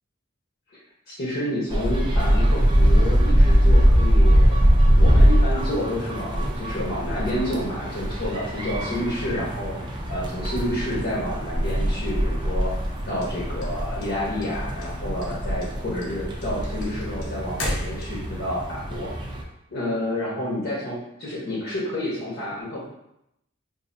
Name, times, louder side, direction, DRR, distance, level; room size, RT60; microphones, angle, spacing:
voice 1, 1.1-4.6 4.9-12.7 13.1-19.1 19.7-22.9, left 1 dB, 55° left, -6 dB, 0.9 m, -29 dB
sound 1, 1.7-19.4, equal, 25° right, 0.5 m, -22 dB
sound 2, 13.2-14.5 14.8-15.3 15.6-18.4, left 1 dB, 85° left, 0.9 m, -33 dB
4.1 x 2.6 x 2.6 m, 0.83 s
head